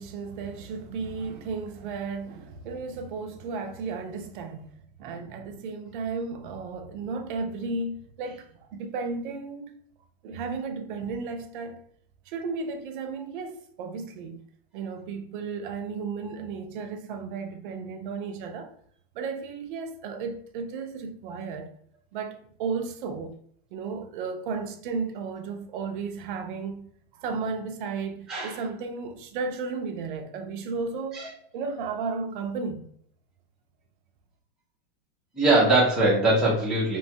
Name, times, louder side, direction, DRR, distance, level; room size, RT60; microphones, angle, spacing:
voice 1, 0.0-4.7 5.0-9.7 10.2-11.8 12.3-14.4 14.7-18.7 19.1-21.7 22.1-23.3 23.7-32.9, right 4 dB, 55° right, 0.5 m, -34 dB
voice 2, 28.3-28.6 31.1-31.3 35.3-37.0, right 2 dB, ahead, 0.5 m, -21 dB
2.9 x 2.2 x 2.8 m
supercardioid pair, 150°, 30 cm